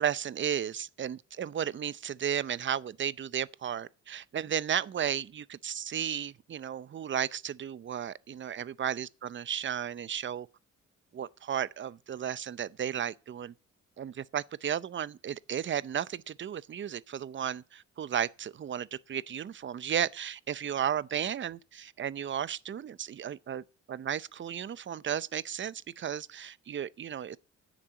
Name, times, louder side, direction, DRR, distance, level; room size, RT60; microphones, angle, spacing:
voice 1, 0.0-10.5 11.1-13.5 14.0-27.4, right 9 dB, 40° right, 0.6 m, -34 dB
10.5 x 7.2 x 9.0 m
cardioid pair, 90°, 30 cm